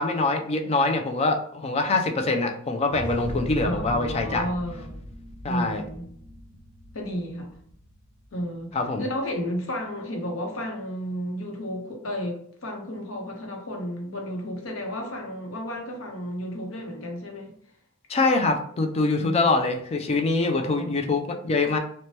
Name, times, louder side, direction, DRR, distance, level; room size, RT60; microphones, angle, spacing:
voice 1, 0.0-4.5 5.4-5.8 8.7-9.1 18.1-21.8, left 3 dB, 30° left, 5 dB, 0.3 m, -24 dB
sound 1, 2.9-8.4, equal, 40° right, 0.8 m, -38 dB
voice 2, 3.6-5.0 5.5-6.1 6.9-7.5 8.3-8.7 9.0-17.5 19.1-19.5 20.4-20.9, equal, 90° left, 1 dB, 0.8 m, -32 dB
2.8 x 2.1 x 3.1 m, 0.63 s
head